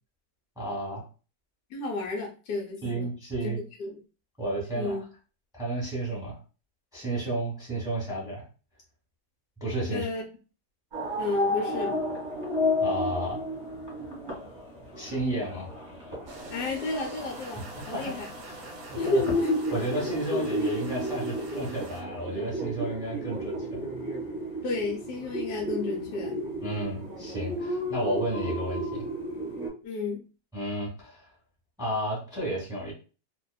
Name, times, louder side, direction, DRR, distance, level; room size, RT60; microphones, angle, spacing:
voice 1, 0.6-1.0 2.8-3.6 4.4-5.0 5.5-6.4 6.9-8.4 9.6-10.0 12.8-13.4 15.0-15.7 17.7-18.1 18.5-18.6 18.9-19.2 19.7-23.8 26.6-29.0 30.5-31.3 31.8-32.9, right 1 dB, 5° right, -5 dB, 0.8 m, -32 dB
voice 2, 1.7-3.1 3.4-3.5 3.8-4.0 4.7-5.0 9.9-10.2 11.2-12.0 16.5-18.3 18.9-19.6 20.3-20.4 24.6-26.4 29.8-30.2, left 3 dB, 75° left, 1 dB, 1.1 m, -31 dB
sound 1, 10.9-29.7, equal, 35° right, 1.1 m, -33 dB
sound 2, 16.3-22.0, right 2 dB, 65° right, 1.0 m, -45 dB
2.7 x 2.3 x 2.2 m, 0.35 s
omnidirectional pair, 1.8 m